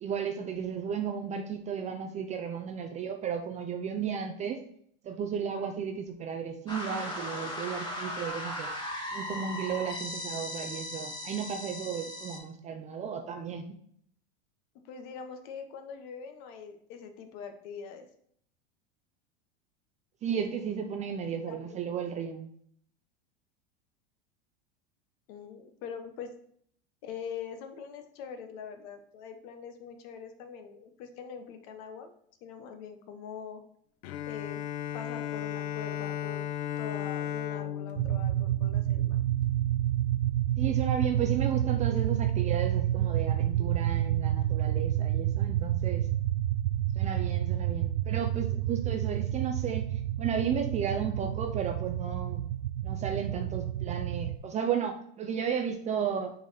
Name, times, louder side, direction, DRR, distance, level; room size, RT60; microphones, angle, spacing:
voice 1, 0.0-4.6 5.0-8.7 9.1-13.8 20.2-22.5 40.6-46.1 46.9-52.4 52.8-56.3, right 7 dB, 20° right, 5 dB, 0.4 m, -34 dB
sound 1, 6.7-12.4, left 1 dB, 15° left, 1.8 m, -37 dB
voice 2, 14.8-18.1 21.4-21.8 25.3-26.3 27.0-32.1 32.4-33.6 34.3-34.6 34.9-36.5 36.8-39.2, left 6 dB, 50° left, 7 dB, 1.0 m, -43 dB
Bowed string instrument, 34.0-39.5, left 10 dB, 75° left, 0.6 m, -36 dB
sound 2, 38.0-54.4, right 12 dB, 85° right, 0.5 m, -29 dB
6.0 x 4.1 x 4.1 m, 0.65 s
supercardioid pair, 140°, 32 cm